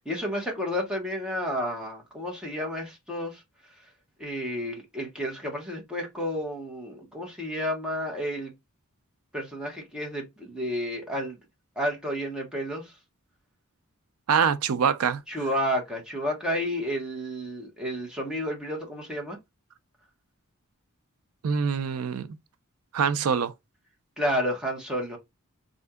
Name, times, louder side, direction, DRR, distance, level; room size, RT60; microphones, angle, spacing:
voice 1, 0.0-3.4 4.2-8.5 9.3-11.4 11.8-12.9 15.3-19.4 24.2-25.2, equal, 5° right, 1.2 m, -31 dB
voice 2, 14.3-15.2 21.4-22.3 22.9-23.5, right 6 dB, 85° right, 0.4 m, -24 dB
4.3 x 2.6 x 2.2 m
head